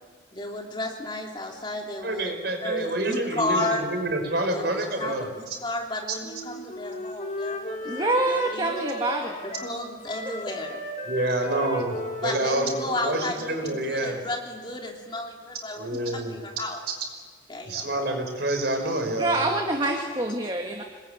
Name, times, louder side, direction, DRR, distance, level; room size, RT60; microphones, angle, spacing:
voice 1, 0.3-2.3 2.6-3.8 4.5-8.7 9.4-10.8 12.2-16.8 17.5-17.9, left 2 dB, 25° left, 1 dB, 3.1 m, -33 dB
voice 2, 2.0-5.6 11.1-14.2 15.8-16.4 17.6-19.5, right 1 dB, 55° right, 4 dB, 5.6 m, -28 dB
Wind instrument woodwind instrument, 6.2-13.9, equal, 40° left, 3.9 m, -35 dB
voice 3, 7.8-9.4 19.1-20.8, right 2 dB, 25° right, 2 dB, 1.9 m, -26 dB
26.0 x 20.5 x 9.5 m, 1.5 s
head